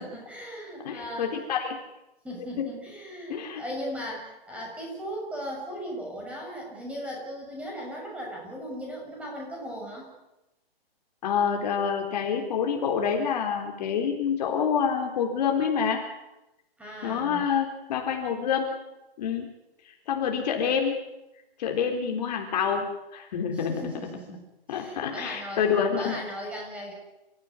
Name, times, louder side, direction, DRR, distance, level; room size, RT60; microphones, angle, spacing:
voice 1, 0.0-1.4 2.2-10.1 16.8-17.5 23.5-24.4 24.7-25.6 26.0-26.9, equal, 5° right, -2 dB, 6.8 m, -37 dB
voice 2, 0.8-1.8 2.6-2.7 3.3-3.6 11.2-16.0 17.0-18.8 19.2-19.5 19.8-21.0 21.6-22.9 23.1-23.8 24.7-26.2, left 7 dB, 40° left, 2 dB, 3.8 m, -27 dB
29.0 x 15.0 x 9.7 m, 0.95 s
hypercardioid pair, 155°, 30 cm